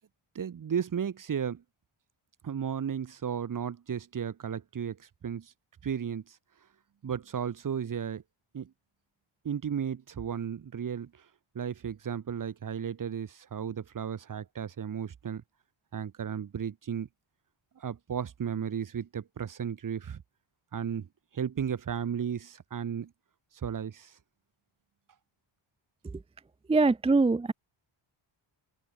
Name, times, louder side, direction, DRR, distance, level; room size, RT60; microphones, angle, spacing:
voice 1, 0.3-1.6 2.4-5.5 5.8-6.4 7.0-8.2 8.5-8.7 9.4-11.3 11.5-15.4 15.9-17.1 17.8-20.2 20.7-21.1 21.3-23.1 23.5-24.2, right 8 dB, 40° right, 0.8 m, -34 dB
voice 2, 26.7-27.5, right 3 dB, 15° right, 0.3 m, -23 dB
open air
wide cardioid pair, 125°, 49 cm